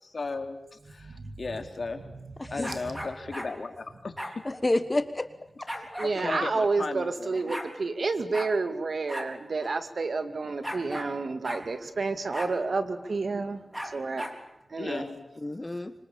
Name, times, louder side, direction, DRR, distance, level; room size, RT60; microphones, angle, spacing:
voice 1, 0.0-2.0 2.5-4.4 5.7-5.9 6.2-7.5 14.8-15.3, left 3 dB, 60° left, 6 dB, 3.5 m, -36 dB
voice 2, 1.0-1.3 2.7-2.8 6.0-14.3 14.7-15.0, right 3 dB, 65° right, 10 dB, 2.4 m, -30 dB
voice 3, 2.4-2.7 4.4-5.3 5.6-5.7 6.1-6.5 15.4-15.9, left 2 dB, 25° left, 11 dB, 1.4 m, -29 dB
sound 1, 2.6-3.5 4.2-4.4 5.7-6.1 7.0-7.1 7.3-7.7 8.3-8.5 9.1-9.3 9.6-9.7 10.6-11.1 11.4-11.6 12.3-12.5 13.7-14.4, equal, 5° right, 4.0 m, -36 dB
26.0 x 25.5 x 8.9 m, 0.82 s
wide cardioid pair, 90°, 0 cm